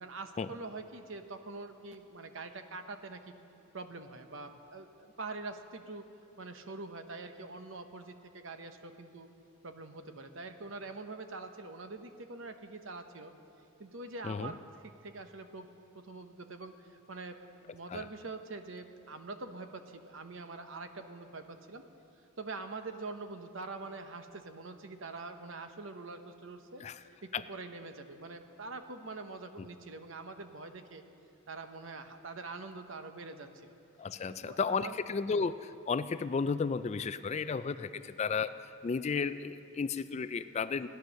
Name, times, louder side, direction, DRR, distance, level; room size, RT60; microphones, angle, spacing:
voice 1, 0.0-3.4 3.7-6.1 6.4-9.3 9.6-13.3 13.8-21.9 22.4-26.8 27.2-31.0 31.5-33.7 34.3-35.0 37.9-38.1, right 3 dB, 65° right, 7 dB, 0.9 m, -44 dB
voice 2, 34.0-40.9, left 5 dB, 30° left, 13 dB, 0.3 m, -33 dB
16.5 x 10.5 x 6.4 m, 2.7 s
head